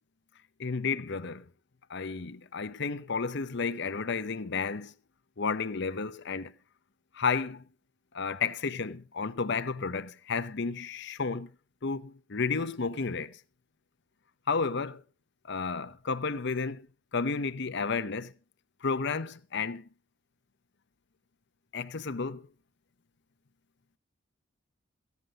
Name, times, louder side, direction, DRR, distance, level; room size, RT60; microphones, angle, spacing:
voice 1, 0.6-1.4 1.9-4.9 5.4-6.5 7.1-7.6 8.1-11.5 11.8-13.4 14.5-15.0 15.5-16.9 17.1-18.3 18.8-19.9 21.7-22.5, left 5 dB, 60° left, 0.9 m, -32 dB
15.5 x 9.4 x 5.1 m
head